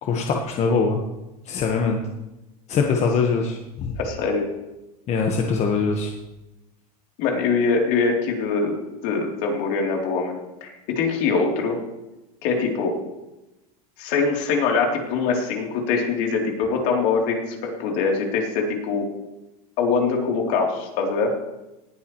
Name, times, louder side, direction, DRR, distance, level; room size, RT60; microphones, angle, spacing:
voice 1, 0.0-1.0 1.5-2.0 2.7-3.9 5.1-6.1, left 5 dB, 35° left, 2 dB, 1.4 m, -22 dB
voice 2, 4.0-4.4 7.2-8.8 9.0-11.8 12.4-12.9 14.0-19.0 19.8-21.3, left 4 dB, 60° left, 0 dB, 3.4 m, -23 dB
18.5 x 11.0 x 3.2 m, 0.99 s
supercardioid pair, 115°, 19 cm